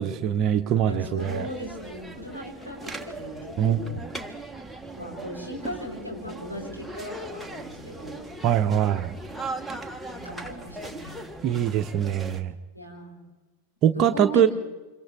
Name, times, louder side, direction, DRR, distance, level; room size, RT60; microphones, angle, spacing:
voice 1, 0.0-1.5 3.6-3.8 8.4-9.2 11.4-12.5 13.8-14.5, right 9 dB, 35° right, 8 dB, 0.8 m, -23 dB
voice 2, 0.8-4.0 5.0-8.2 10.1-11.1 12.7-13.2 13.9-14.5, equal, 85° left, -4 dB, 7.7 m, -38 dB
sound 1, 1.2-12.4, right 2 dB, ahead, 1.3 m, -39 dB
29.5 x 26.0 x 3.5 m, 1.1 s
figure-of-eight pair, 90°, 0 cm